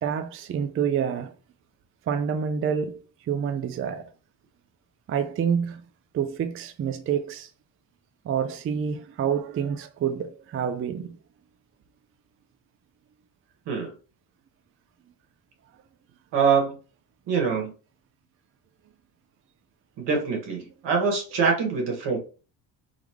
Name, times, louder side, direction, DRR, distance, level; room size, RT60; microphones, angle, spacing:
voice 1, 0.0-1.3 2.1-3.0 3.3-4.1 5.1-5.8 6.1-7.5 8.2-11.1, right 7 dB, 30° right, 0.4 m, -27 dB
voice 2, 16.3-16.8 17.3-17.7 20.0-22.2, right 5 dB, 75° right, 1.7 m, -24 dB
3.6 x 3.5 x 3.1 m
cardioid pair, 120°, 42 cm